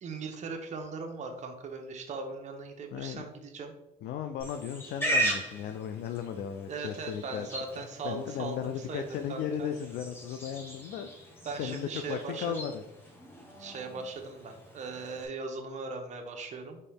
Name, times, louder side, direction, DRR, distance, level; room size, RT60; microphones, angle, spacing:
voice 1, 0.0-3.7 6.7-9.7 11.4-12.5 13.6-16.8, right 4 dB, 45° right, 4 dB, 0.8 m, -39 dB
voice 2, 2.9-3.2 4.0-7.5 8.0-12.8, left 8 dB, 70° left, 7 dB, 0.4 m, -36 dB
Livestock farm animals working animals, 4.4-15.3, right 1 dB, 15° left, 0.9 m, -38 dB
4.4 x 3.1 x 3.4 m, 0.89 s
cardioid pair, 110°, 17 cm